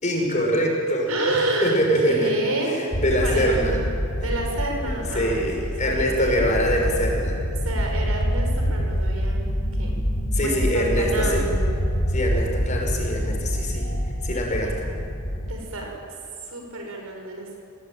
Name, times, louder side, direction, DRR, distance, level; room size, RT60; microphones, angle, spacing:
voice 1, 0.0-1.4 1.6-2.4 2.6-3.8 4.2-4.3 5.1-7.4 10.3-11.5 12.1-13.9 14.2-14.9, equal, 35° left, 0 dB, 6.1 m, -24 dB
voice 2, 1.1-1.8 2.0-2.9 3.2-3.8 4.1-6.5 7.6-9.5 9.8-10.0 10.4-11.7 15.5-15.9 16.5-17.6, right 2 dB, 80° right, 2 dB, 6.3 m, -29 dB
sound 1, 2.9-15.6, equal, 50° left, 4.4 m, -26 dB
27.5 x 19.5 x 9.1 m, 2.6 s
head